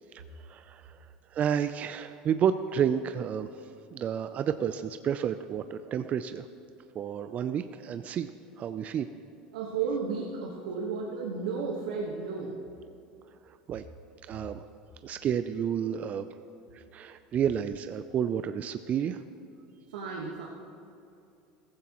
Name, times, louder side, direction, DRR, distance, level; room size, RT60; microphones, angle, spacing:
voice 1, 0.5-0.9 1.3-3.5 3.9-6.5 6.9-8.3 8.6-9.1 13.5-13.8 14.3-14.6 15.0-16.3 16.7-19.2, right 8 dB, 40° right, 10 dB, 0.5 m, -30 dB
voice 2, 9.5-12.6 19.9-20.5, right 5 dB, 85° right, -2 dB, 1.5 m, -33 dB
17.0 x 15.0 x 3.1 m, 2.7 s
hypercardioid pair, 90°, 4 cm